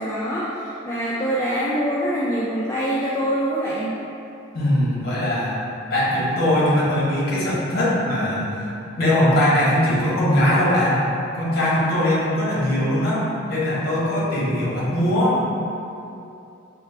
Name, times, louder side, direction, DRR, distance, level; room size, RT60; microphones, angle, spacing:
voice 1, 0.0-3.9, equal, 15° left, -8 dB, 0.3 m, -24 dB
voice 2, 4.5-5.6 5.9-8.7 9.0-11.0 11.3-15.6, left 1 dB, 50° left, -7 dB, 1.0 m, -21 dB
4.2 x 2.4 x 3.2 m, 2.7 s
head